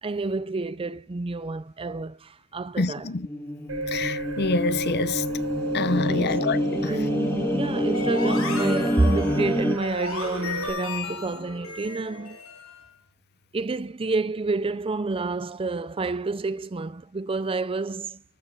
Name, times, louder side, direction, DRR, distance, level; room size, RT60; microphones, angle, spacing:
voice 1, 0.0-3.1 5.6-5.8 6.1-12.4 13.5-18.2, right 3 dB, 25° right, 0.5 m, -29 dB
voice 2, 2.8-3.3 3.9-5.2 5.7-6.9, left 4 dB, 50° left, 0.7 m, -26 dB
sound 1, 3.0-9.8, equal, 10° left, 1.8 m, -27 dB
sound 2, 3.7-10.7, right 2 dB, 70° right, 5.7 m, -34 dB
sound 3, 7.9-12.8, left 4 dB, 80° left, 6.2 m, -35 dB
13.0 x 4.5 x 8.1 m
head